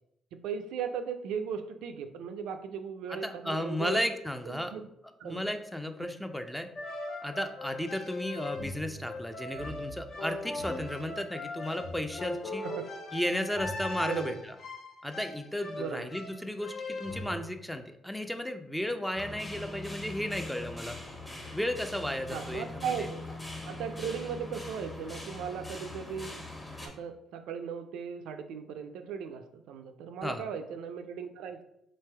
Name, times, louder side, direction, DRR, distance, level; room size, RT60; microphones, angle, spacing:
voice 1, 0.3-4.0 4.5-4.9 5.2-5.4 12.6-12.7 14.0-14.4 15.8-16.1 22.3-23.2 23.6-26.4 26.8-31.6, right 7 dB, 90° right, 7 dB, 0.3 m, -37 dB
voice 2, 3.1-4.7 5.2-6.7 7.2-12.7 13.1-14.6 15.0-21.0 21.5-23.1 30.2-30.4, left 1 dB, 5° left, 7 dB, 0.4 m, -34 dB
sound 1, 6.8-17.4, left 2 dB, 60° left, 0.7 m, -39 dB
sound 2, 19.1-26.9, left 2 dB, 20° left, 1.0 m, -42 dB
3.8 x 3.2 x 3.3 m, 0.80 s
cardioid pair, 90°, 0 cm